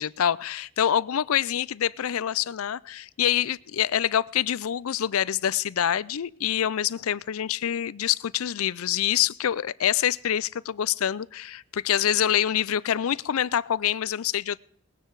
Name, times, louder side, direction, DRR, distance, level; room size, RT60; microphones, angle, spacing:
voice 1, 0.0-14.6, left 10 dB, 85° left, 0.4 m, -26 dB
20.0 x 9.7 x 4.7 m
head